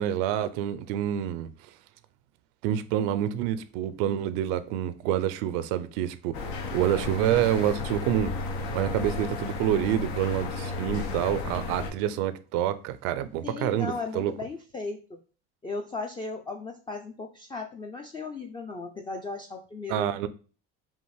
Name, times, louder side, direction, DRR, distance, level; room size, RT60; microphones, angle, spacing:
voice 1, 0.0-1.5 2.6-8.4 8.7-14.3 19.9-20.3, right 11 dB, 80° right, 0.5 m, -27 dB
sound 1, 6.3-11.9, left 3 dB, 85° left, 0.8 m, -33 dB
voice 2, 13.4-15.2 15.6-20.3, left 3 dB, 15° left, 0.3 m, -36 dB
5.4 x 2.5 x 3.2 m
supercardioid pair, 95°, 32 cm